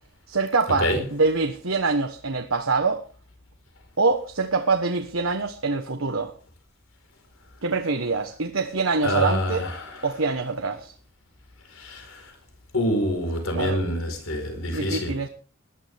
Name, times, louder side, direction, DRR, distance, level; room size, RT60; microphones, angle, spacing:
voice 1, 0.3-3.0 4.0-6.3 7.6-9.6 10.0-10.9 13.5-13.8 14.7-15.3, right 4 dB, 70° right, 1.3 m, -25 dB
voice 2, 9.0-9.9 11.7-12.3 12.7-15.1, left 1 dB, 75° left, 4.6 m, -26 dB
20.5 x 12.0 x 3.6 m
head